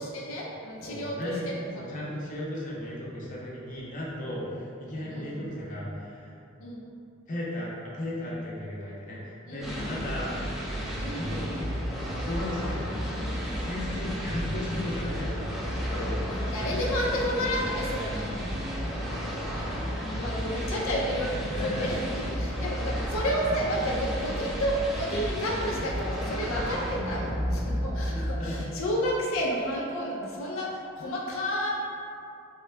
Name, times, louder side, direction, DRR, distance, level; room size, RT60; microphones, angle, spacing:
voice 1, 0.0-1.8 5.0-5.4 6.6-6.9 9.5-10.1 11.0-11.3 16.3-18.5 20.1-31.7, equal, 85° left, -3 dB, 0.5 m, -31 dB
voice 2, 0.8-1.4 1.8-6.3 7.3-10.3 11.1-11.7 12.2-16.3 16.5-16.8 19.7-20.2 21.3-21.9 28.0-28.5, left 1 dB, 40° left, -6 dB, 0.7 m, -36 dB
sound 1, 9.6-28.6, equal, ahead, 0.4 m, -32 dB
3.6 x 2.2 x 3.2 m, 2.6 s
head